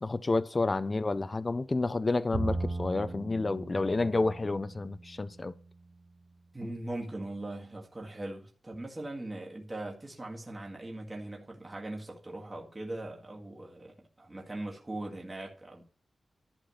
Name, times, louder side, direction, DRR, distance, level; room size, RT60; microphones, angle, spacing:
voice 1, 0.0-5.5, left 3 dB, 25° left, 0.4 m, -30 dB
Bowed string instrument, 2.3-5.7, right 2 dB, 40° right, 1.5 m, -38 dB
voice 2, 6.5-15.8, right 1 dB, 20° right, 1.9 m, -40 dB
11.5 x 4.0 x 7.7 m
wide cardioid pair, 160°, 0 cm